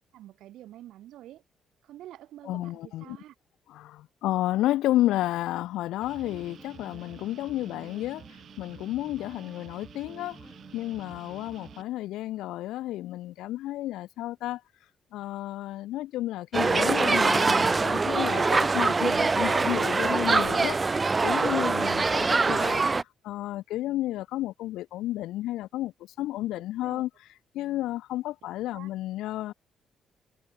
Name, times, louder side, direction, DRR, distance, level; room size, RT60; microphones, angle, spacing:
voice 1, 0.1-1.4 1.8-3.3 26.8-27.0 28.7-28.9, right 13 dB, 80° right, 4.8 m, -47 dB
voice 2, 2.4-3.2 3.7-8.2 8.6-10.4 10.7-14.6 15.1-22.9 23.2-25.9 26.2-27.1 27.5-29.5, left 15 dB, 90° left, 0.8 m, -31 dB
sound 1, 6.0-11.8, right 9 dB, 60° right, 1.2 m, -50 dB
Guitar, 6.2-11.8, left 1 dB, 5° left, 7.7 m, -52 dB
sound 2, 16.5-23.0, right 4 dB, 30° right, 0.4 m, -24 dB
cardioid pair, 90°, 0 cm